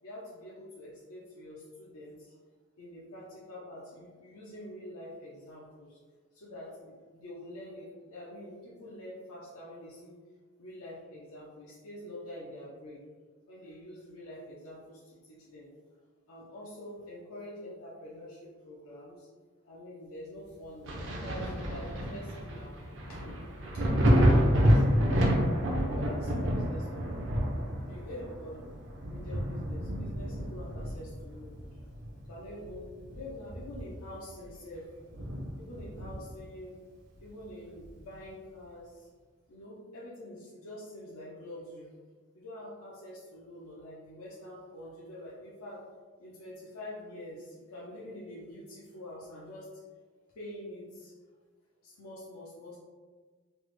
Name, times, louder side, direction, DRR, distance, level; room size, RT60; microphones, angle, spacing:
voice 1, 0.0-2.4 2.8-6.0 6.3-10.2 10.6-13.0 13.5-15.7 16.3-19.3 19.6-22.8 23.1-23.4 23.7-24.0 24.3-25.5 25.9-27.1 27.7-28.7 29.1-31.8 32.2-35.1 35.6-36.8 37.2-39.1 39.5-41.9 42.3-45.8 46.2-49.8 50.3-51.2 51.8-52.8, left 1 dB, 90° left, -6 dB, 0.6 m, -46 dB
Thunder, 20.8-32.2 32.6-34.1 34.5-34.6 35.1-36.4 37.8-37.9, equal, 55° right, 0.5 m, -29 dB
3.2 x 2.0 x 3.1 m, 1.4 s
head